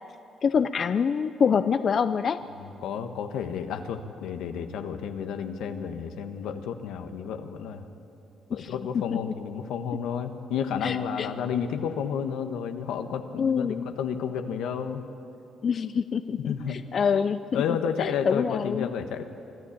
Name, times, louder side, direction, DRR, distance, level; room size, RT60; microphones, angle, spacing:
voice 1, 0.4-2.4 8.6-9.2 10.8-11.3 13.4-13.9 15.6-17.6 18.0-18.9, left 6 dB, 50° left, 11 dB, 0.5 m, -26 dB
voice 2, 2.6-7.8 8.5-15.0 16.4-16.8 17.5-19.2, left 7 dB, 90° left, 7 dB, 1.3 m, -31 dB
24.5 x 13.0 x 8.6 m, 2.9 s
cardioid pair, 90°, 0 cm